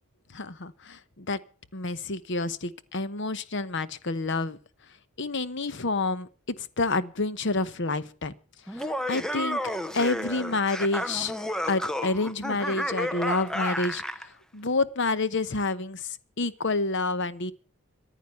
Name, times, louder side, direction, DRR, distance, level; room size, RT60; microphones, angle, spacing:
voice 1, 0.3-1.4 1.7-4.6 5.2-6.3 6.6-8.3 8.7-9.6 9.9-11.3 11.7-17.5, left 3 dB, 55° left, 1.0 m, -29 dB
Laughter, 8.7-14.3, equal, 5° left, 0.6 m, -31 dB
14.5 x 10.0 x 7.0 m
head